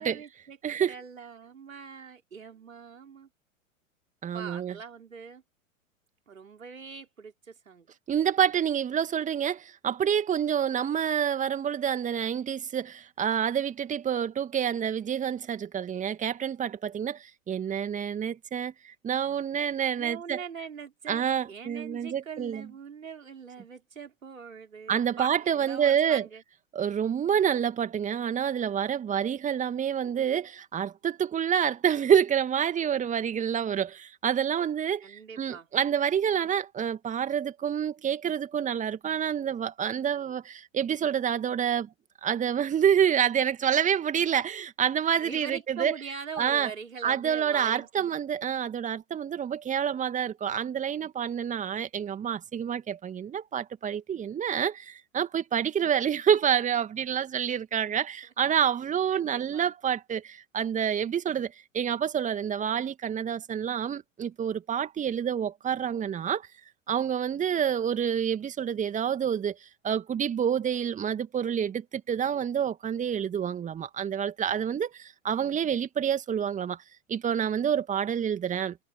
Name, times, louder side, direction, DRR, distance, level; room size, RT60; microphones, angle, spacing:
voice 1, 0.0-3.3 4.3-5.4 6.3-7.9 20.0-26.4 35.0-35.7 45.2-48.1 59.1-59.7, right 6 dB, 70° right, 5.2 m, -42 dB
voice 2, 0.6-0.9 4.2-4.7 8.1-20.4 21.1-22.6 24.9-26.2 26.7-41.9 42.2-45.9 46.4-46.7 47.0-66.4 66.9-69.5 69.8-76.8 77.1-78.8, right 8 dB, 20° right, 2.4 m, -28 dB
figure-of-eight pair, 100°, 41 cm